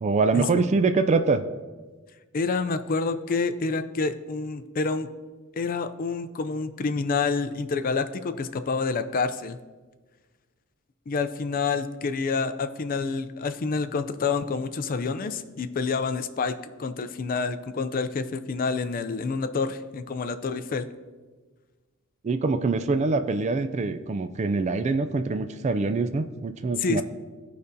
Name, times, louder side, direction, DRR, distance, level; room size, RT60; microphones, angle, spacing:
voice 1, 0.0-1.4 22.2-27.0, right 3 dB, 30° right, 10 dB, 0.3 m, -24 dB
voice 2, 2.3-5.1 5.6-9.6 11.1-20.9 26.8-27.0, left 4 dB, 40° left, 10 dB, 0.4 m, -28 dB
14.5 x 5.1 x 2.7 m, 1.3 s
head